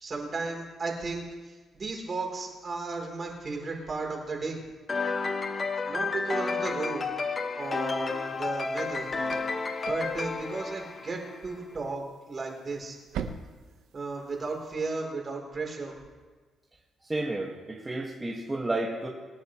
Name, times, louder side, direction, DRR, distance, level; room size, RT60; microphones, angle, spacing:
voice 1, 0.0-1.2 1.7-4.6 5.9-7.1 7.6-9.1 9.8-13.0 13.9-16.0, right 3 dB, 40° right, 0 dB, 3.8 m, -34 dB
sound 1, 4.9-11.5, left 4 dB, 35° left, 1.2 m, -31 dB
sound 2, 7.6-14.7, right 7 dB, 85° right, 1.1 m, -45 dB
voice 2, 17.0-19.1, right 2 dB, 20° right, -2 dB, 1.9 m, -31 dB
24.5 x 9.9 x 3.2 m, 1.4 s
cardioid pair, 90°, 0 cm